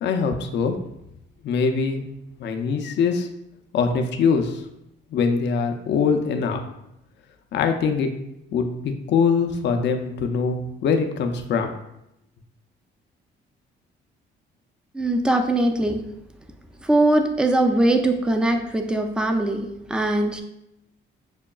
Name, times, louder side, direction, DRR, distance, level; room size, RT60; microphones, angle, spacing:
voice 1, 0.0-0.8 1.4-2.1 2.4-3.3 3.7-4.6 5.1-6.6 7.5-8.2 8.5-11.8, left 5 dB, 65° left, 5 dB, 0.5 m, -23 dB
voice 2, 14.9-16.0 16.8-20.4, right 1 dB, 5° right, 5 dB, 0.4 m, -21 dB
6.1 x 2.2 x 2.3 m, 0.82 s
cardioid pair, 90°, 20 cm